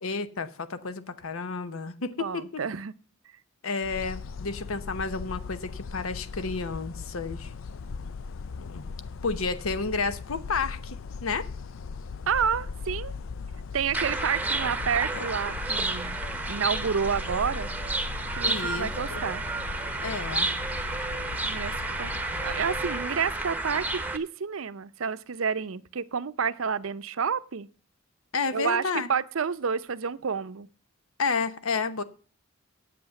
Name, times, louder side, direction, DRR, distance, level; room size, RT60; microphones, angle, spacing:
voice 1, 0.0-2.6 3.6-7.5 8.6-8.9 9.2-11.5 18.4-19.2 20.0-20.5 28.3-29.1 31.2-32.0, left 4 dB, 85° left, 0.9 m, -31 dB
voice 2, 2.2-2.9 12.3-13.1 13.7-16.2 16.5-17.7 18.3-19.4 21.4-21.7 22.0-22.1 22.4-27.7 28.5-28.8 29.1-30.7, right 6 dB, 70° right, 0.6 m, -29 dB
sound 1, 3.8-23.0, left 4 dB, 70° left, 0.4 m, -39 dB
sound 2, 13.9-24.2, right 2 dB, 10° right, 0.9 m, -31 dB
9.3 x 7.9 x 7.0 m
head